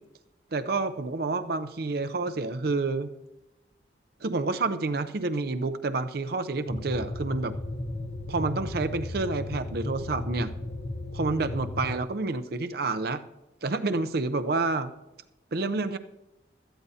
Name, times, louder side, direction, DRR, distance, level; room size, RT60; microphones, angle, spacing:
voice 1, 0.5-3.1 4.2-7.6 8.3-10.5 11.1-13.2 13.6-14.9 15.5-16.0, right 3 dB, 55° right, 10 dB, 0.6 m, -29 dB
sound 1, 6.7-12.0, left 2 dB, 40° left, 0.8 m, -35 dB
17.0 x 13.5 x 2.8 m, 0.98 s
head